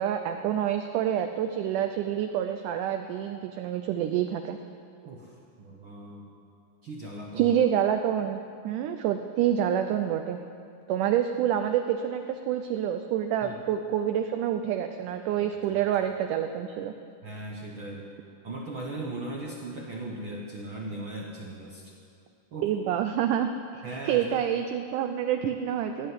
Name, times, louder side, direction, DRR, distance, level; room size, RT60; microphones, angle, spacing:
voice 1, 0.0-4.6 7.4-10.4 10.9-16.9 22.6-23.5 23.7-26.1, right 10 dB, 80° right, 6 dB, 2.0 m, -27 dB
voice 2, 5.0-6.3 6.8-7.6 13.4-13.6 15.7-15.8 17.2-18.1 18.4-21.9 22.5-22.7 23.8-24.3, right 2 dB, 60° right, -2 dB, 1.4 m, -38 dB
16.0 x 8.7 x 9.6 m, 2.4 s
omnidirectional pair, 3.9 m